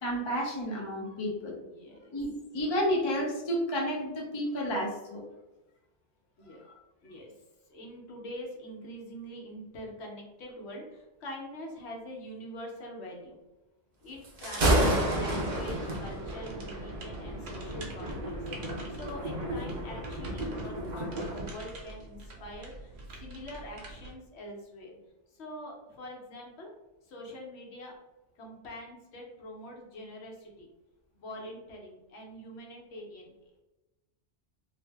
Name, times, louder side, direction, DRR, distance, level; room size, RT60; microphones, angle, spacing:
voice 1, 0.0-1.6 2.1-5.2, equal, 35° left, -1 dB, 0.4 m, -31 dB
voice 2, 1.6-2.1 6.4-6.7 7.0-7.3 7.7-13.4 14.0-22.9 23.2-25.0 25.3-26.7 27.0-27.9 28.4-30.7 31.1-33.5, equal, 70° left, 0 dB, 1.0 m, -44 dB
Thunder, 14.2-21.5, right 1 dB, 50° right, 0.6 m, -31 dB
sound 1, 15.9-24.1, right 2 dB, 65° right, 0.9 m, -46 dB
2.6 x 2.0 x 3.3 m, 1.0 s
omnidirectional pair, 1.2 m